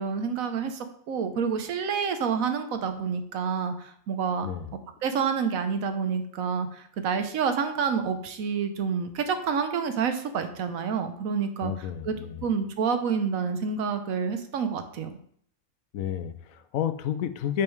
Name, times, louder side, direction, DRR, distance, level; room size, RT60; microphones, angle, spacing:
voice 1, 0.0-4.5 5.0-12.2 12.4-15.2, right 6 dB, 85° right, 8 dB, 1.2 m, -28 dB
voice 2, 4.4-4.7 11.6-12.4 15.9-17.6, left 9 dB, 85° left, 11 dB, 1.1 m, -31 dB
6.5 x 5.4 x 4.6 m, 0.63 s
omnidirectional pair, 1.4 m